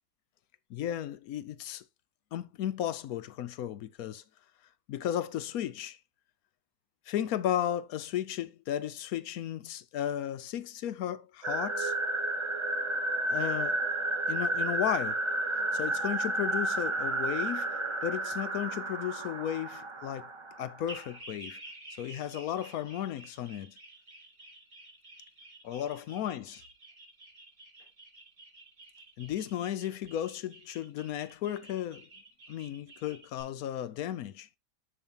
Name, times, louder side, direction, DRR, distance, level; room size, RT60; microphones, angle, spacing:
voice 1, 0.7-1.8 2.3-4.2 4.9-6.0 7.1-11.9 13.3-13.8 14.3-15.2 15.7-17.7 18.0-20.3 20.6-21.6 22.0-23.8 25.6-26.6 29.2-32.1 32.5-34.5, left 11 dB, 70° left, 1.0 m, -34 dB
sound 1, 11.4-21.1, right 2 dB, 35° right, 0.4 m, -32 dB
sound 2, 20.9-33.4, right 2 dB, 55° right, 3.6 m, -51 dB
7.2 x 7.1 x 2.9 m
omnidirectional pair, 1.8 m